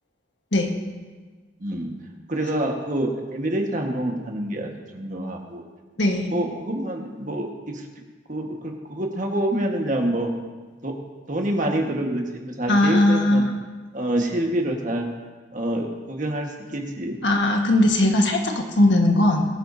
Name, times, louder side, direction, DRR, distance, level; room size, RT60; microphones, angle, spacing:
voice 1, 1.6-1.9 2.3-5.6 6.3-7.8 8.3-10.3 10.8-10.9 11.3-13.4 13.9-15.1 15.5-17.2, right 1 dB, 40° right, 1 dB, 1.5 m, -27 dB
voice 2, 12.7-13.5 17.2-19.5, left 1 dB, 70° left, 2 dB, 1.5 m, -19 dB
22.0 x 9.1 x 2.7 m, 1.4 s
head